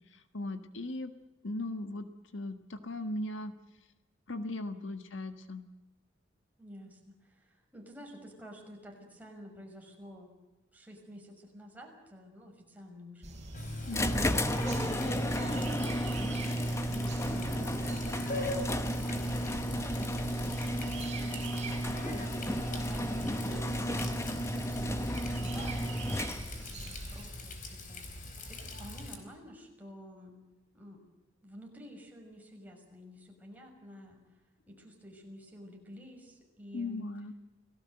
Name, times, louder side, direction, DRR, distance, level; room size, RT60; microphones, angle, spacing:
voice 1, 0.1-1.1 1.4-2.1 2.3-3.5 4.3-5.6 13.9-14.3 36.7-37.3, left 2 dB, 70° left, 8 dB, 1.6 m, -38 dB
voice 2, 6.6-10.4 10.7-13.4 16.2-17.5 18.2-30.3 30.7-31.0 31.4-37.1, equal, 10° right, 0 dB, 6.1 m, -51 dB
sound 1, 13.2-27.3, right 2 dB, 35° right, 4.9 m, -44 dB
Water tap faucet, 13.5-29.1, left 2 dB, 40° left, 4.4 m, -42 dB
sound 2, 13.9-26.7, equal, 15° left, 1.2 m, -33 dB
29.5 x 18.5 x 7.9 m, 1.1 s
head